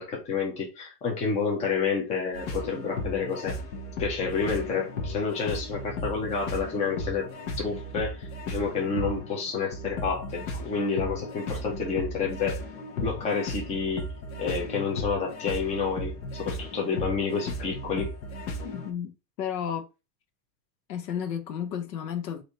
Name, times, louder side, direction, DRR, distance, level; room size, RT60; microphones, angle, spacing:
voice 1, 0.0-3.6 4.0-7.3 7.6-12.6 13.0-14.1 14.4-18.1, left 5 dB, 15° left, 0.6 m, -29 dB
sound 1, 2.3-18.9, left 1 dB, 55° left, 1.0 m, -36 dB
voice 2, 18.6-19.9 20.9-22.4, left 8 dB, 80° left, 0.9 m, -33 dB
3.2 x 2.8 x 3.9 m
supercardioid pair, 150°, 49 cm